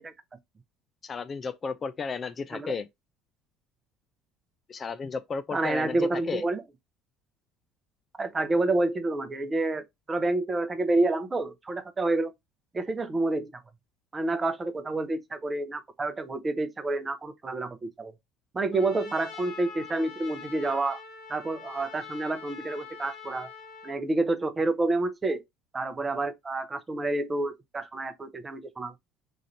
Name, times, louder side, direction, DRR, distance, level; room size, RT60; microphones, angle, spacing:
voice 1, 1.0-2.9 4.7-6.4, left 5 dB, 35° left, 0.3 m, -33 dB
voice 2, 5.5-6.6 8.2-12.3 12.7-13.5 14.1-18.1 18.5-21.0 21.3-23.5 23.8-25.4 25.7-28.9, right 2 dB, 25° right, 0.6 m, -28 dB
Trumpet, 18.7-24.0, left 6 dB, 50° left, 0.8 m, -44 dB
3.1 x 2.5 x 4.0 m
figure-of-eight pair, 60°, 0 cm